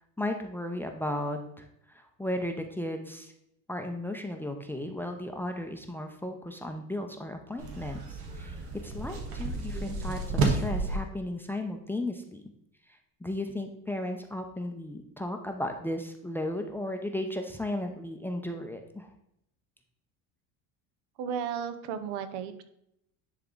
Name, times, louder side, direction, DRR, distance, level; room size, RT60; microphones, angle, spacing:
voice 1, 0.2-3.3 3.7-12.4 13.2-19.1, left 1 dB, 5° left, 5 dB, 0.6 m, -35 dB
sound 1, 7.6-11.0, right 3 dB, 90° right, 1.6 m, -31 dB
voice 2, 21.2-22.6, right 7 dB, 70° right, 10 dB, 0.9 m, -34 dB
10.5 x 3.5 x 3.8 m, 0.77 s
supercardioid pair, 115°, 44 cm